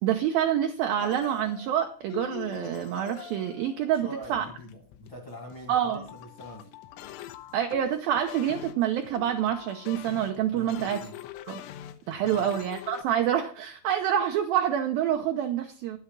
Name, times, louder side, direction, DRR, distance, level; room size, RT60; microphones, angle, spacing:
voice 1, 0.0-4.5 5.7-6.0 7.5-11.0 11.5-11.6 12.1-16.0, right 10 dB, 85° right, 5 dB, 2.1 m, -27 dB
sound 1, 1.0-13.0, left 12 dB, 85° left, 3.4 m, -44 dB
voice 2, 3.9-6.7 10.5-11.2 12.2-12.5, equal, 50° left, 1 dB, 1.5 m, -43 dB
11.0 x 8.6 x 5.4 m, 0.43 s
omnidirectional pair, 5.5 m